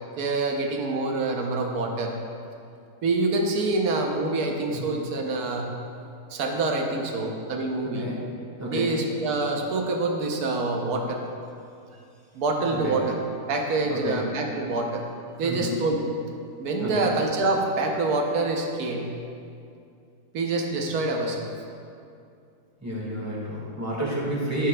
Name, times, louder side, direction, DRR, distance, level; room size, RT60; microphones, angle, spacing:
voice 1, 0.2-2.1 3.0-5.7 6.3-8.1 8.7-11.2 12.3-13.2 13.5-15.0 15.4-16.0 16.6-19.1 20.3-21.5, right 3 dB, 65° right, 2 dB, 1.2 m, -26 dB
voice 2, 4.7-5.0 7.8-8.2 8.6-8.9 12.7-13.0 13.9-14.2 15.4-15.7 16.8-17.1 22.8-24.7, equal, 10° right, -5 dB, 1.5 m, -30 dB
12.0 x 6.7 x 2.3 m, 2.5 s
omnidirectional pair, 1.8 m